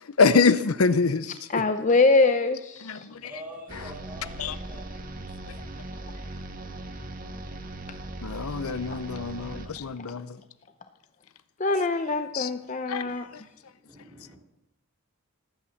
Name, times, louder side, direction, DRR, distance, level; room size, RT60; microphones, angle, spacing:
voice 1, 0.2-1.6 2.8-3.1 3.7-3.9 4.4-4.6 8.2-10.4 12.3-12.5 12.9-13.1, left 4 dB, 85° left, 15 dB, 0.7 m, -25 dB
voice 2, 1.5-3.1 11.6-13.3, left 3 dB, 35° left, 8 dB, 0.6 m, -23 dB
voice 3, 3.2-4.8 13.0-13.2 13.9-14.4, equal, 10° right, -3 dB, 4.3 m, -45 dB
sound 1, 3.7-10.0, right 2 dB, 40° right, 1.4 m, -39 dB
19.0 x 8.9 x 7.1 m, 0.89 s
head